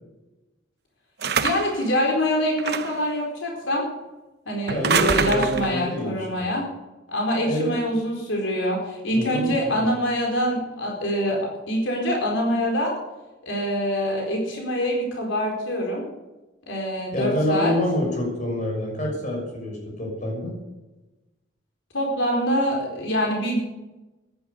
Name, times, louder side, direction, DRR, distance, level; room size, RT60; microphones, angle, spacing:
sound 1, 1.2-1.8 2.6-3.1 4.7-5.8, right 6 dB, 55° right, 0.9 m, -25 dB
voice 1, 1.4-3.8 4.5-6.7 7.1-11.4 11.7-12.9 13.4-16.0 16.7-17.7 21.9-23.6, equal, 85° left, 0 dB, 4.4 m, -25 dB
voice 2, 4.7-6.5 7.5-7.7 9.1-9.8 17.1-20.6, left 1 dB, 40° left, -1 dB, 6.7 m, -27 dB
15.0 x 11.5 x 6.9 m, 1.1 s
head